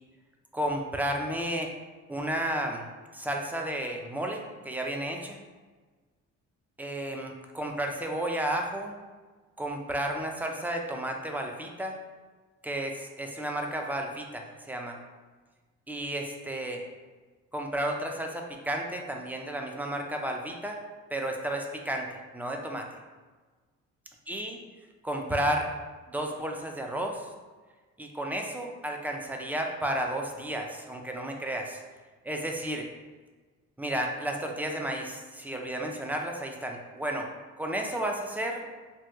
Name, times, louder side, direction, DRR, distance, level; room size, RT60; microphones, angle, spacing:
voice 1, 0.5-1.7 2.1-2.9 3.1-5.4 6.8-8.9 9.6-12.0 12.6-15.0 15.9-16.8 17.5-20.8 21.1-22.1 22.3-22.9 24.3-24.6 25.0-25.7 26.1-27.3 28.0-31.8 32.2-32.9 33.8-37.3 37.6-38.6, right 1 dB, 5° right, 2 dB, 0.3 m, -32 dB
2.7 x 2.2 x 3.4 m, 1.4 s
cardioid pair, 90°, 30 cm